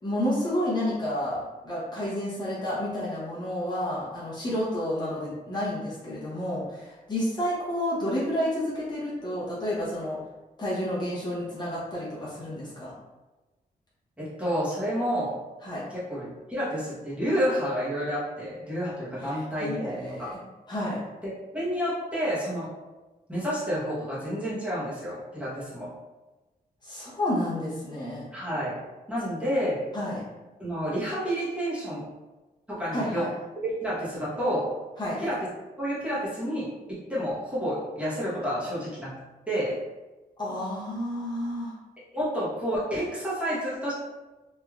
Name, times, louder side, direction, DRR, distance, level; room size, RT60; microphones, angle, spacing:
voice 1, 0.0-1.4 1.6-10.2 10.6-12.9 15.6-15.8 19.2-20.4 20.7-21.0 26.8-28.2 29.9-30.2 32.9-33.3 35.0-35.2 40.4-41.7, left 1 dB, 30° left, -8 dB, 0.8 m, -30 dB
voice 2, 14.2-15.3 15.9-20.3 21.2-22.7 23.3-25.9 28.3-28.8 29.1-29.8 30.6-32.0 32.7-33.2 33.6-34.7 35.2-35.4 35.8-39.1 39.5-39.7 42.1-43.9, equal, 10° right, -9 dB, 0.9 m, -29 dB
3.1 x 2.5 x 2.3 m, 1.1 s
wide cardioid pair, 155°, 15 cm